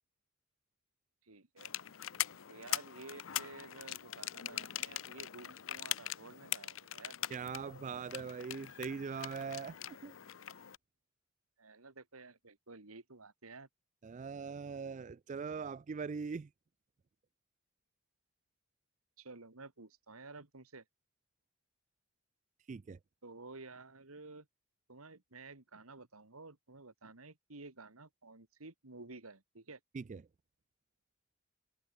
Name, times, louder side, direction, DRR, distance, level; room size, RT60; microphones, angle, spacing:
voice 1, 1.2-1.7 2.5-7.2 11.6-13.7 19.2-20.8 23.2-24.5 24.9-29.8, right 3 dB, 90° right, 2.4 m, -52 dB
sound 1, 1.6-10.8, left 12 dB, 65° left, 0.7 m, -42 dB
voice 2, 7.3-10.1 14.0-16.5 22.7-23.0 29.9-30.2, right 5 dB, 35° right, 0.3 m, -41 dB
head